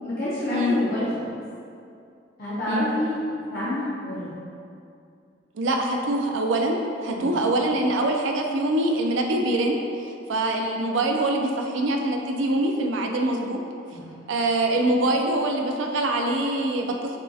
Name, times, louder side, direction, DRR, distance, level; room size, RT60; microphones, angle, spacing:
voice 1, 0.0-1.3 2.4-3.2 3.5-4.3 7.1-7.5 13.9-14.1, left 1 dB, 55° left, -11 dB, 0.7 m, -28 dB
voice 2, 5.5-13.6 14.3-17.2, right 1 dB, 80° right, 2 dB, 0.4 m, -24 dB
6.2 x 2.7 x 2.3 m, 2.4 s
head